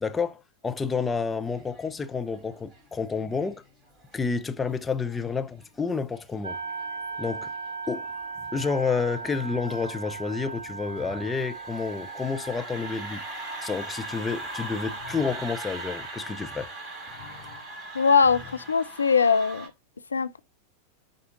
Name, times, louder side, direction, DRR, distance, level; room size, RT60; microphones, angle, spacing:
voice 1, 0.0-3.6 4.1-6.6 7.2-7.5 7.9-8.1 8.5-13.2 13.6-16.7, left 5 dB, 15° left, 0.8 m, -29 dB
sound 1, 0.8-19.7, right 1 dB, 20° right, 4.0 m, -42 dB
sound 2, 6.4-18.1, right 4 dB, 75° right, 1.4 m, -39 dB
sound 3, 11.0-11.5 15.0-15.5 17.1-17.7 18.2-18.7, left 6 dB, 45° left, 2.2 m, -47 dB
voice 2, 17.9-19.7 20.1-20.4, left 5 dB, 75° left, 0.4 m, -21 dB
9.4 x 4.1 x 3.9 m
figure-of-eight pair, 90°, 0 cm